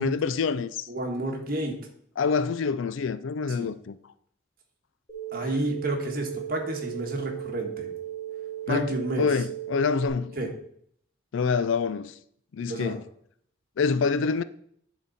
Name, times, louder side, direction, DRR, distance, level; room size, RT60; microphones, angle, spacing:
voice 1, 0.0-0.9 2.2-4.0 8.7-8.9 9.2-10.4 11.3-12.1 12.5-13.0 13.8-14.4, left 5 dB, 70° left, 0.4 m, -26 dB
voice 2, 0.9-1.8 3.6-3.7 5.3-7.9 8.7-9.3 10.4-10.5 12.7-12.9, right 1 dB, 45° right, 1.4 m, -30 dB
sound 1, 5.1-10.1, right 12 dB, 35° left, 2.0 m, -36 dB
10.0 x 4.0 x 4.1 m
head